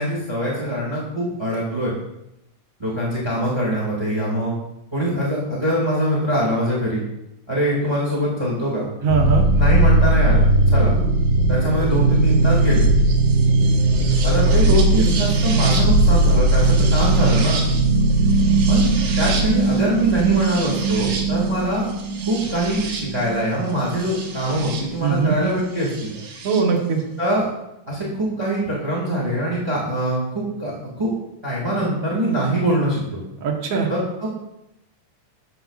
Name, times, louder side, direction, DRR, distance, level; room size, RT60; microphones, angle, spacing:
voice 1, 0.0-1.9 2.8-4.5 4.9-7.0 7.5-8.9 9.5-10.9 11.5-12.9 14.2-17.6 18.7-18.9 19.2-21.9 22.3-26.1 27.2-27.5 27.9-31.1 31.4-33.2 33.9-34.3, right 1 dB, 10° right, -6 dB, 1.3 m, -23 dB
voice 2, 9.0-9.4 14.7-15.1 25.0-25.4 26.4-27.0 33.4-33.9, right 5 dB, 60° right, 0 dB, 2.0 m, -21 dB
sound 1, 9.1-24.8 26.0-26.6, right 2 dB, 75° right, 2.5 m, -18 dB
13.5 x 6.8 x 2.4 m, 0.87 s
omnidirectional pair, 3.6 m